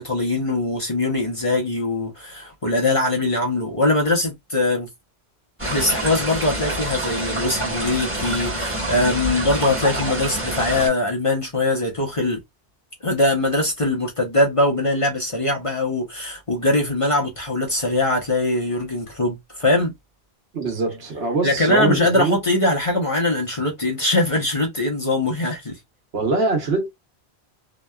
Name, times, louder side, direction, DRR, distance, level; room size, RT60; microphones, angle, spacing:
voice 1, 0.0-4.9 5.6-12.4 13.0-19.9 21.4-25.8, left 2 dB, 35° left, 0.8 m, -22 dB
sound 1, 5.6-10.9, right 1 dB, 10° right, 1.1 m, -26 dB
voice 2, 20.5-22.4 26.1-26.9, right 3 dB, 75° right, 1.1 m, -23 dB
2.9 x 2.2 x 2.2 m
omnidirectional pair, 1.1 m